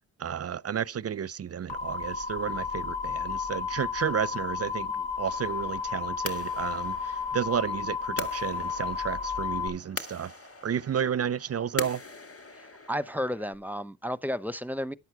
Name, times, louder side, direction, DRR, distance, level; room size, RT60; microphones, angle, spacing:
voice 1, 0.2-4.9 5.2-10.3 10.6-12.0, right 8 dB, 40° right, 0.5 m, -32 dB
sound 1, 1.7-9.7, left 5 dB, 60° left, 2.2 m, -32 dB
sound 2, 5.3-13.6, left 3 dB, 35° left, 1.9 m, -42 dB
voice 2, 12.5-14.9, equal, 5° right, 0.8 m, -33 dB
11.0 x 8.0 x 4.6 m
cardioid pair, 50°, 41 cm